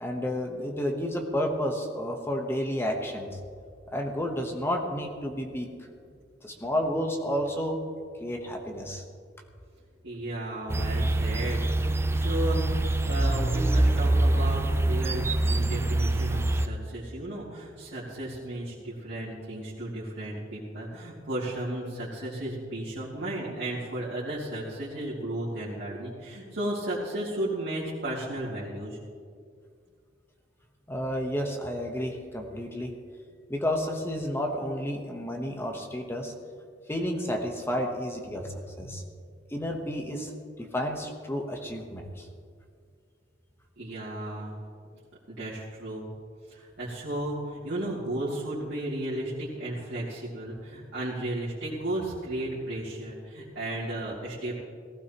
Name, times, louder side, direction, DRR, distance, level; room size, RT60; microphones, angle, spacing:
voice 1, 0.0-3.3 3.9-5.7 6.4-7.8 8.2-9.0 30.9-32.9 33.5-36.3 36.9-38.5 38.8-39.0 39.5-40.3 40.7-42.3, equal, 15° left, 2 dB, 1.0 m, -31 dB
voice 2, 10.0-12.7 13.1-29.0 43.8-44.5 45.3-46.1 46.5-54.5, right 1 dB, 60° right, -9 dB, 2.7 m, -34 dB
sound 1, 10.7-16.7, right 2 dB, 15° right, 0.4 m, -25 dB
18.5 x 15.5 x 3.0 m, 2.2 s
head